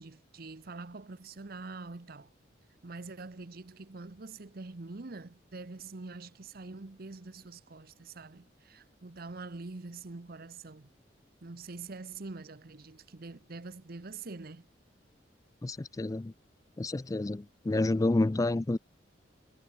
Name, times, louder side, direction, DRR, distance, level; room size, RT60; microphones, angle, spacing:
voice 1, 0.0-2.3 2.8-10.9 11.4-14.7, right 3 dB, 55° right, 0.9 m, -45 dB
voice 2, 15.6-16.3 16.8-18.8, left 2 dB, 20° left, 0.4 m, -29 dB
head